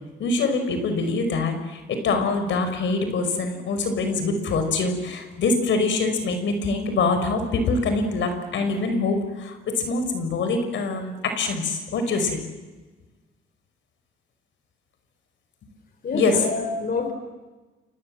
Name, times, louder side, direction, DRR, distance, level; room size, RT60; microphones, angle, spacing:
voice 1, 0.2-12.4 16.1-16.5, left 3 dB, 70° left, 7 dB, 5.2 m, -24 dB
voice 2, 16.0-17.1, left 3 dB, 50° left, 7 dB, 4.4 m, -27 dB
28.0 x 27.0 x 7.6 m, 1.2 s
cardioid pair, 90°, 20 cm